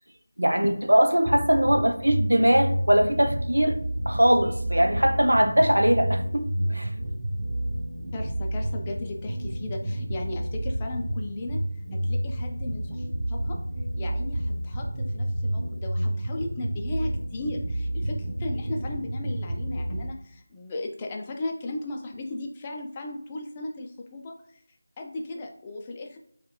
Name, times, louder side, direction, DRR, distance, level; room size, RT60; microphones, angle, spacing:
voice 1, 0.4-3.8 4.1-6.9, equal, 90° right, 0.4 m, -21 dB
sound 1, 1.3-20.0, right 1 dB, 60° right, 0.8 m, -30 dB
voice 2, 8.1-11.6 11.9-13.6 14.0-24.6 25.0-26.2, left 2 dB, 20° left, 0.3 m, -36 dB
4.5 x 2.2 x 2.2 m
figure-of-eight pair, 170°, 0 cm